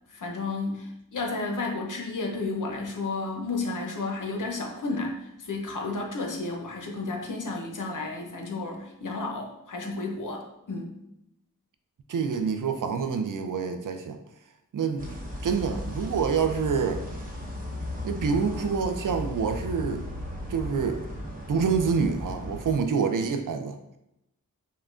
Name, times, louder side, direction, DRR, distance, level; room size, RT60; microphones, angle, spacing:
voice 1, 0.1-10.9, left 3 dB, 60° left, 1 dB, 0.8 m, -32 dB
voice 2, 12.1-14.2 14.7-17.0 18.0-20.0 20.5-21.0 21.5-23.8, right 5 dB, 60° right, 7 dB, 0.5 m, -27 dB
sound 1, 15.0-22.8, left 1 dB, 25° right, 0.9 m, -36 dB
5.5 x 2.2 x 2.5 m, 0.84 s
cardioid pair, 45°, 35 cm